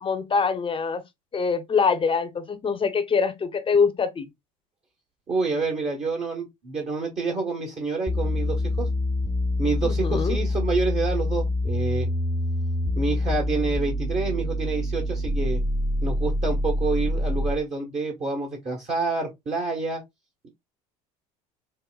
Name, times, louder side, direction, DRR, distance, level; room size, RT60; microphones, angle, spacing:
voice 1, 0.0-1.0 1.3-4.3 9.8-10.4, left 5 dB, 30° left, 0.7 m, -24 dB
voice 2, 5.3-8.9 9.6-12.1 12.9-15.6 16.0-20.0, right 3 dB, 35° right, 1.3 m, -28 dB
sound 1, 8.1-17.7, left 1 dB, 5° left, 0.5 m, -26 dB
5.3 x 2.1 x 2.3 m
hypercardioid pair, 80°, 18 cm